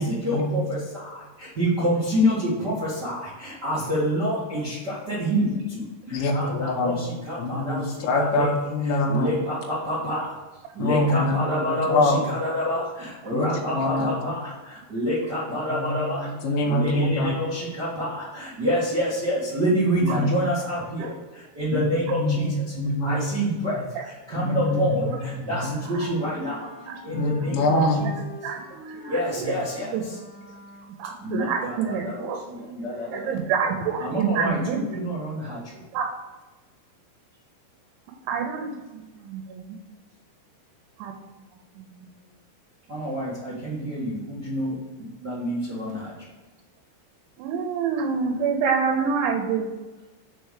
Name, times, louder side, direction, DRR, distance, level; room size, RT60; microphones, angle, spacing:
voice 1, 0.0-8.5 8.8-10.3 10.7-16.3 16.6-22.5 23.0-26.6 27.0-28.0 29.1-30.2 31.2-33.3 34.0-35.8 42.9-46.1, equal, 60° right, -8 dB, 1.0 m, -28 dB
voice 2, 6.1-7.0 7.4-9.3 10.8-12.3 13.3-14.2 15.8-17.3 20.0-20.3 21.7-21.9 22.2-23.2 24.4-25.8 27.1-28.1 29.4-29.5, left 1 dB, 90° left, 0 dB, 1.9 m, -25 dB
voice 3, 11.1-11.6 14.2-14.3 20.0-20.2 21.0-21.1 22.3-22.4 23.9-24.1 25.0-25.4 25.9-26.2 26.6-27.0 27.6-28.1 28.4-28.6 29.0-29.6 29.9-30.1 31.0-32.4 33.1-35.0 35.9-36.1 38.3-39.8 41.0-41.1 41.8-42.0 47.4-49.7, right 6 dB, 80° right, 3 dB, 3.0 m, -28 dB
Wind instrument woodwind instrument, 25.7-31.2, left 2 dB, 50° left, 1.5 m, -44 dB
6.1 x 4.5 x 6.5 m, 1.2 s
omnidirectional pair, 5.4 m